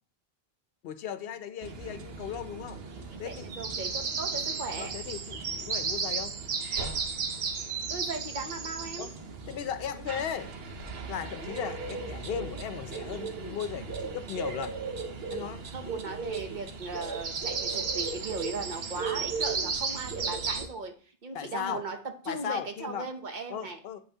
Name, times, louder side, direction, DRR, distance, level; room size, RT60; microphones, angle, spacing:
voice 1, 0.8-2.8 3.2-3.5 4.8-6.4 9.0-9.1 9.5-10.5 11.1-14.8 15.3-15.6 21.3-21.9 22.3-23.0 23.5-24.0, left 9 dB, 75° left, 11 dB, 0.8 m, -36 dB
sound 1, 1.6-20.7, right 5 dB, 75° right, 1.0 m, -35 dB
voice 2, 3.1-4.9 7.9-9.1 15.7-20.9 21.2-22.0 22.2-23.8, right 3 dB, 50° right, 6 dB, 0.9 m, -38 dB
8.2 x 5.5 x 2.8 m, 0.44 s
omnidirectional pair, 1.0 m